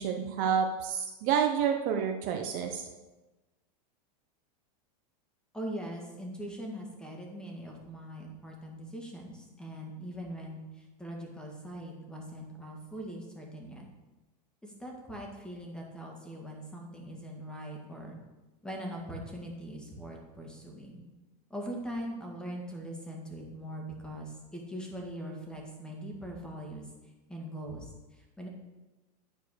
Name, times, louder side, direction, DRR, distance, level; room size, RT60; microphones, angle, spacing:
voice 1, 0.0-2.8, right 7 dB, 45° right, 4 dB, 0.8 m, -29 dB
voice 2, 5.5-13.8 14.6-18.2 18.6-21.0 21.5-28.5, equal, 5° left, 0 dB, 1.7 m, -41 dB
9.9 x 4.6 x 6.5 m, 1.1 s
supercardioid pair, 140°, 21 cm